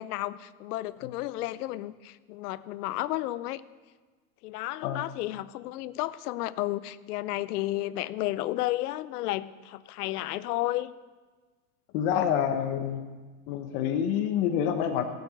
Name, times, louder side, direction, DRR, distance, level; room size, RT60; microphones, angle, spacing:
voice 1, 0.0-3.6 4.4-10.9, left 16 dB, 80° left, 17 dB, 0.7 m, -32 dB
voice 2, 11.9-13.0 13.5-15.0, left 9 dB, 60° left, 6 dB, 1.3 m, -27 dB
17.5 x 8.0 x 6.5 m, 1.4 s
supercardioid pair, 115°, 45 cm